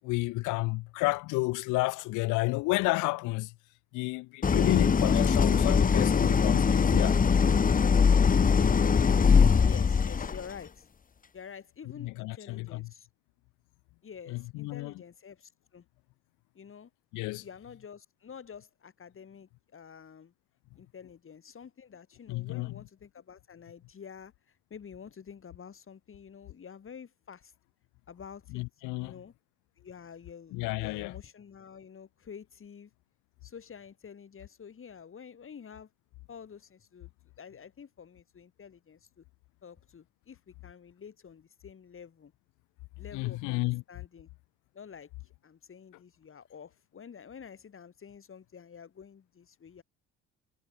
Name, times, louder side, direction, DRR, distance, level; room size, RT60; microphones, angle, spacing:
voice 1, 0.0-3.5 3.9-7.2 12.0-12.9 14.3-14.9 17.1-17.4 22.3-22.8 28.5-29.2 30.5-31.1 43.1-43.8, left 23 dB, 70° left, 1.3 m, -31 dB
Idling, 4.4-10.5, left 6 dB, 25° left, 1.0 m, -22 dB
voice 2, 9.6-10.9 11.3-13.1 14.0-15.8 16.5-16.9 17.4-20.3 20.7-27.5 28.1-28.6 29.0-29.3 29.8-32.9 33.4-35.9 36.3-37.1 37.4-39.2 39.6-42.3 43.0-43.6 43.9-44.3 44.7-49.8, left 7 dB, 40° left, 6.5 m, -49 dB
hypercardioid pair, 55°, 32 cm